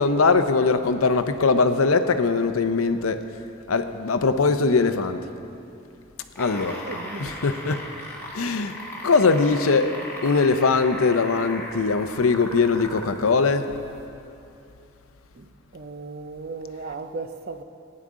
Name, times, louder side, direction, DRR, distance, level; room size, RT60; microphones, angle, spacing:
voice 1, 0.0-3.3 3.7-5.2 6.4-6.8 7.2-7.8 8.3-8.7 9.0-10.0 10.2-13.7, left 4 dB, 85° left, 0.6 m, -21 dB
sound 1, 6.2-13.2 14.0-14.1, left 1 dB, 10° left, 1.3 m, -37 dB
voice 2, 6.8-7.4 15.4-15.5 15.7-17.6, right 3 dB, 45° right, 0.5 m, -36 dB
18.0 x 10.0 x 3.7 m
head